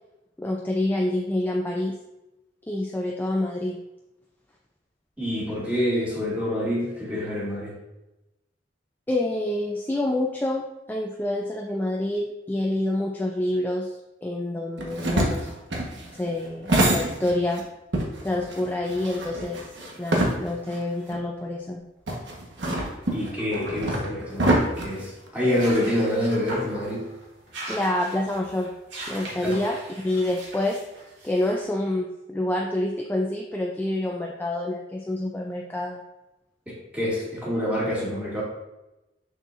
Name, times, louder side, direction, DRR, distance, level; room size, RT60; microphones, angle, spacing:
voice 1, 0.4-2.0 2.7-3.8 9.1-15.5 16.1-17.6 18.2-19.6 20.0-21.8 27.7-28.7 29.1-30.8 31.2-36.0, left 1 dB, 10° left, 0 dB, 0.4 m, -27 dB
voice 2, 5.2-7.8 23.1-27.1 29.4-29.6 36.7-38.4, left 1 dB, 10° right, -7 dB, 2.3 m, -27 dB
sound 1, 14.8-17.6 17.9-20.8 21.1-21.2 22.1-25.7, right 1 dB, 75° right, 1.2 m, -26 dB
sound 2, 25.5-31.6, right 1 dB, 90° right, 2.1 m, -39 dB
6.5 x 6.4 x 2.5 m, 0.97 s
head